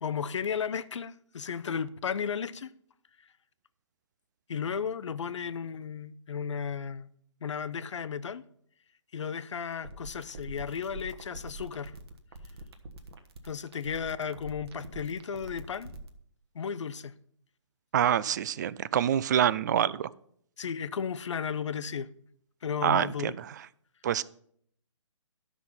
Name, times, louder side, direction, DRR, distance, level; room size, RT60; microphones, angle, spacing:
voice 1, 0.0-2.7 4.5-7.1 7.4-8.4 9.1-11.9 13.4-15.9 16.5-17.1 20.6-22.1 22.6-23.3, left 7 dB, 65° left, 0.6 m, -34 dB
sound 1, 9.7-16.1, right 2 dB, 50° right, 1.3 m, -44 dB
voice 2, 17.9-20.1 22.8-23.5 24.0-24.2, right 10 dB, 35° right, 0.4 m, -26 dB
12.5 x 6.0 x 5.6 m
hypercardioid pair, 145°, 16 cm